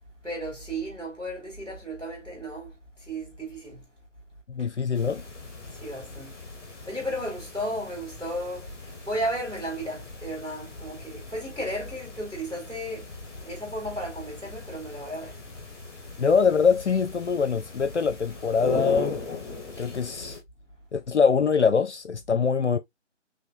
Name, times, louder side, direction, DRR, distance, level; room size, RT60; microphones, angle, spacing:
voice 1, 0.2-3.8 4.6-4.7 5.7-6.4 6.7-15.4, right 1 dB, 5° right, 3.3 m, -34 dB
voice 2, 4.5-5.2 16.2-19.2 19.8-20.4 20.9-22.8, left 5 dB, 65° left, 0.6 m, -23 dB
sound 1, 4.9-20.4, left 3 dB, 20° left, 1.6 m, -39 dB
5.9 x 3.1 x 2.3 m
figure-of-eight pair, 170°, 37 cm